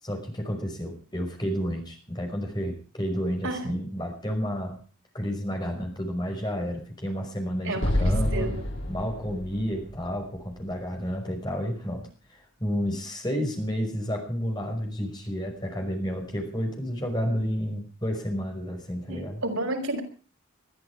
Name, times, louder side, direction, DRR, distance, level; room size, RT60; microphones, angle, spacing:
voice 1, 0.0-4.8 5.1-8.5 8.9-19.4, equal, 20° left, 3 dB, 5.6 m, -31 dB
Explosion, 7.8-11.1, left 1 dB, 60° left, 6.5 m, -29 dB
voice 2, 8.3-8.6 19.1-20.0, right 2 dB, 80° right, 3 dB, 5.4 m, -30 dB
21.5 x 13.5 x 4.8 m, 0.39 s
head